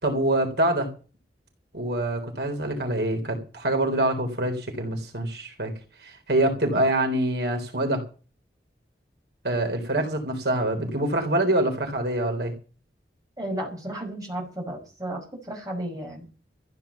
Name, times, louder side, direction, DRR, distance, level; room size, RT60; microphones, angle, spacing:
voice 1, 0.0-0.9 1.7-5.7 6.0-8.0 9.4-12.5, right 1 dB, 70° right, 4 dB, 3.7 m, -25 dB
voice 2, 13.4-16.2, right 1 dB, 20° right, 0 dB, 5.8 m, -33 dB
15.0 x 9.4 x 7.0 m, 0.36 s
head